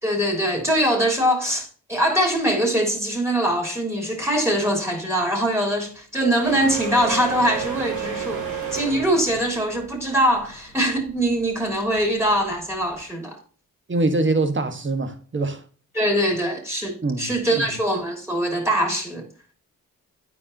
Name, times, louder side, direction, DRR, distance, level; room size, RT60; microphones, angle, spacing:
voice 1, 0.0-13.4 15.9-19.3, right 1 dB, 10° right, 3.2 m, -22 dB
sound 1, 6.4-13.0, right 7 dB, 90° right, 2.2 m, -32 dB
voice 2, 13.9-15.6 17.0-17.3 17.6-17.7, right 2 dB, 35° right, 1.4 m, -23 dB
9.9 x 4.7 x 2.8 m
cardioid pair, 65°, 33 cm